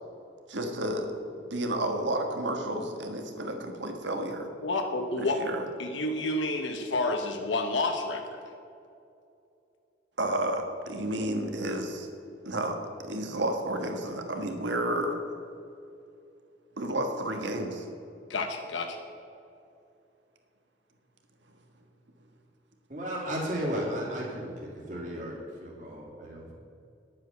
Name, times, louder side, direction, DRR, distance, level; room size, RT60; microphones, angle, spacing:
voice 1, 0.5-1.1 1.5-4.5 5.1-5.6 10.2-12.1 12.4-12.8 13.0-15.2 16.8-17.9, right 1 dB, 80° right, 4 dB, 1.5 m, -31 dB
voice 2, 4.6-5.4 5.8-8.4 18.3-19.0, left 2 dB, 85° left, 4 dB, 1.0 m, -29 dB
voice 3, 22.9-24.5 24.9-26.5, equal, 40° right, -4 dB, 2.6 m, -34 dB
10.5 x 8.8 x 6.7 m, 2.6 s
head